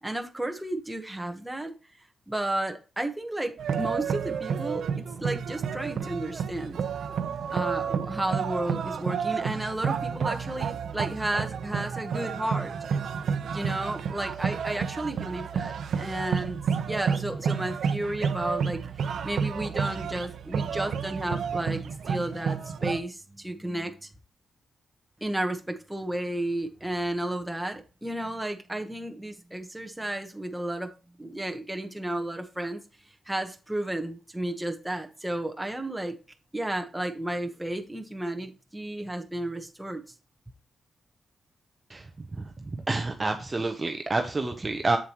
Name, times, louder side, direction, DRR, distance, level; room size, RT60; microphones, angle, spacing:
voice 1, 0.0-1.7 2.3-6.8 7.5-12.7 13.5-16.6 16.9-18.8 19.2-24.1 25.2-30.9 31.2-32.8 33.3-36.1 36.5-40.0, right 1 dB, 5° right, 1.2 m, -32 dB
sound 1, 3.6-23.0, right 6 dB, 70° right, 0.8 m, -30 dB
voice 2, 41.9-42.5 42.9-45.0, right 3 dB, 25° right, 0.8 m, -28 dB
7.4 x 7.4 x 3.1 m
wide cardioid pair, 130°, 0 cm